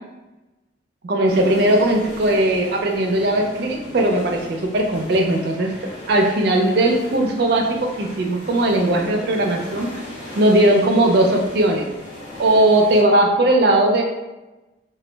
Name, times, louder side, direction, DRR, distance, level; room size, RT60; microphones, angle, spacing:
voice 1, 1.0-5.7 6.1-10.0 10.4-11.9 12.4-14.0, right 1 dB, 55° right, 2 dB, 0.4 m, -18 dB
sound 1, 1.3-13.0, left 1 dB, 40° left, 0.6 m, -37 dB
2.2 x 2.0 x 3.2 m, 1.1 s
head